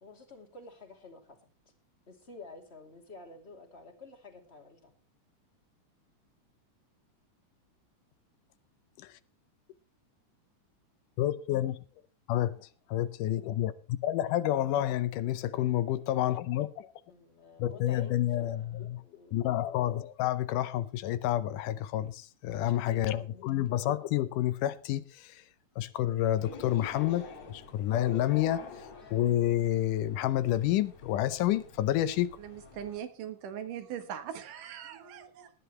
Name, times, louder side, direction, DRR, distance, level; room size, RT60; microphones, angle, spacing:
voice 1, 0.0-1.5 2.1-4.9 17.1-19.3 22.7-23.6, left 3 dB, 20° left, 2.3 m, -51 dB
voice 2, 11.2-11.8 12.3-16.9 17.6-19.0 19.3-25.4 25.8-32.4, left 13 dB, 85° left, 2.3 m, -29 dB
sound 1, 26.4-33.0, left 4 dB, 55° left, 4.2 m, -47 dB
voice 3, 32.4-35.5, right 9 dB, 90° right, 2.9 m, -40 dB
18.0 x 11.5 x 3.2 m
omnidirectional pair, 3.6 m